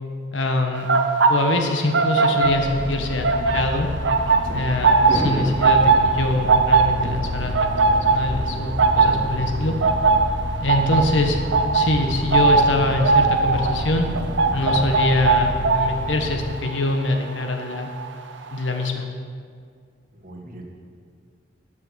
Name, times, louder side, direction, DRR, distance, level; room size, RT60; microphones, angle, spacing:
voice 1, 0.3-1.0 1.3-3.3 3.5-3.9 4.5-7.5 8.1-9.8 10.6-11.4 11.7-14.1 14.5-17.9 18.5-19.0, left 2 dB, 90° left, 4 dB, 1.3 m, -24 dB
sound 1, 0.7-2.9 3.2-18.1 18.4-18.7, right 4 dB, 75° right, 0.8 m, -20 dB
sound 2, 2.4-16.4, left 1 dB, 55° left, 0.9 m, -30 dB
Thunder / Rain, 3.9-16.6, right 1 dB, 25° right, 0.9 m, -37 dB
voice 2, 20.1-20.8, right 1 dB, 50° right, 0 dB, 1.7 m, -41 dB
12.0 x 6.3 x 6.3 m, 2.1 s
head